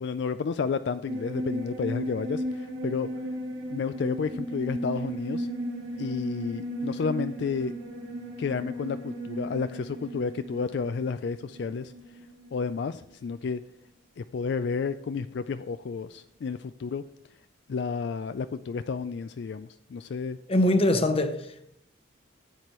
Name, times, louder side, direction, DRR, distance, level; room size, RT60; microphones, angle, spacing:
voice 1, 0.0-3.1 3.7-5.5 6.0-7.7 8.4-11.9 12.5-13.6 14.2-17.0 17.7-20.4, left 5 dB, 60° left, 0.3 m, -31 dB
sound 1, 1.1-13.0 13.3-13.4, right 1 dB, 70° right, 3.4 m, -36 dB
voice 2, 20.5-21.6, left 1 dB, 30° left, 0.8 m, -23 dB
14.5 x 8.3 x 3.1 m
head